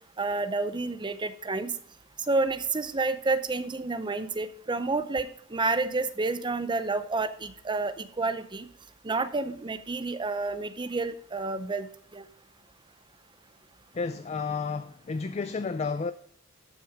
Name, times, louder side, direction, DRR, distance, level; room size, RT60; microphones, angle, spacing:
voice 1, 0.2-1.7 2.2-8.7 9.0-11.9 12.1-12.3, right 3 dB, 20° right, 0.6 m, -29 dB
voice 2, 13.9-16.1, left 4 dB, 30° left, 0.4 m, -31 dB
13.0 x 5.9 x 3.5 m
head